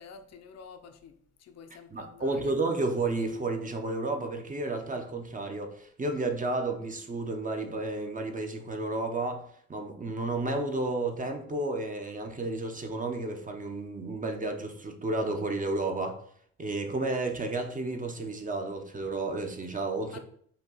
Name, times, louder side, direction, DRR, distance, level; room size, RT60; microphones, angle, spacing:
voice 1, 0.0-2.5 20.1-20.2, left 6 dB, 60° left, 0.6 m, -49 dB
voice 2, 1.9-9.4 9.7-16.1 16.6-20.2, right 2 dB, 25° right, 0.7 m, -32 dB
5.3 x 2.3 x 3.9 m
cardioid pair, 90°, 30 cm